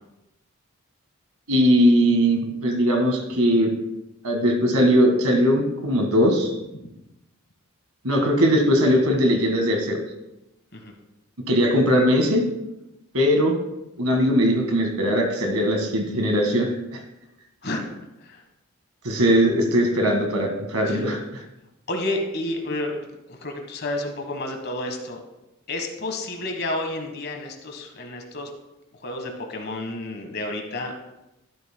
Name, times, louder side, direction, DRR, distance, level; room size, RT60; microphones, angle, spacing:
voice 1, 1.5-3.7 4.2-6.5 8.0-10.0 11.5-12.4 13.1-13.6 14.0-17.0 19.0-21.4, equal, 85° right, 3 dB, 1.7 m, -20 dB
voice 2, 21.9-25.2 25.7-28.5 29.0-31.1, left 2 dB, 50° left, 4 dB, 1.3 m, -30 dB
12.0 x 11.0 x 2.2 m, 0.92 s
head